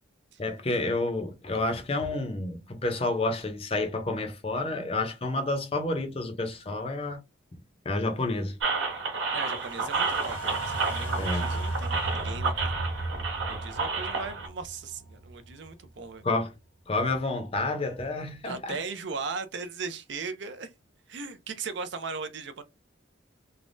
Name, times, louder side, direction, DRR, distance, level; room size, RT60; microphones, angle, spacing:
voice 1, 0.4-7.2 7.8-8.6 11.2-11.5 16.2-16.5 16.9-18.8, left 2 dB, 30° left, 0.5 m, -29 dB
sound 1, 8.6-14.5, right 4 dB, 85° right, 1.3 m, -31 dB
voice 2, 9.3-12.7 13.5-16.2 18.4-20.7 21.1-22.6, right 4 dB, 65° right, 0.5 m, -38 dB
sound 2, 9.4-15.8 16.2-16.3, right 2 dB, 80° left, 1.1 m, -35 dB
3.3 x 2.1 x 2.5 m
head